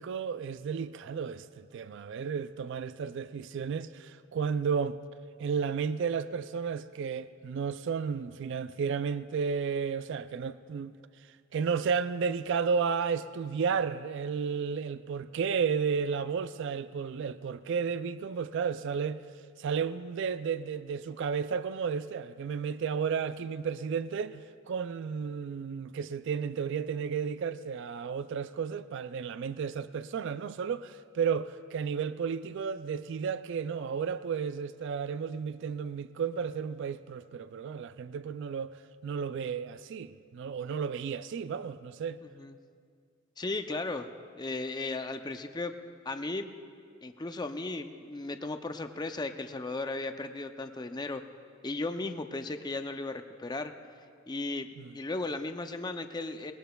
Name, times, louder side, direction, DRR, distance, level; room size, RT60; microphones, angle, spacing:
voice 1, 0.0-5.0 5.4-10.9 11.5-19.2 19.6-38.7 39.0-42.2 54.8-54.9, right 6 dB, 60° right, 0.3 m, -33 dB
voice 2, 42.2-42.6 43.4-44.1 44.4-45.7 46.1-46.5 47.0-51.2 51.6-53.7 54.3-56.5, left 2 dB, 20° left, 0.5 m, -36 dB
20.0 x 19.0 x 2.3 m
head